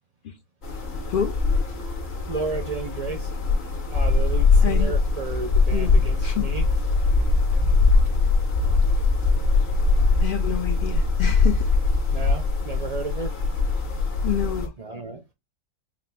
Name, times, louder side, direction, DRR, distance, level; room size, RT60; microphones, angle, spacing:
sound 1, 0.6-14.7, left 3 dB, 45° left, 1.3 m, -22 dB
voice 1, 1.1-1.6 4.6-4.9 5.7-6.4 10.2-11.7 14.2-14.7, left 9 dB, 65° left, 0.5 m, -28 dB
voice 2, 2.3-3.3 3.9-6.7 12.1-13.4 14.8-15.2, right 4 dB, 50° right, 0.4 m, -32 dB
4.6 x 2.4 x 3.3 m
omnidirectional pair, 1.6 m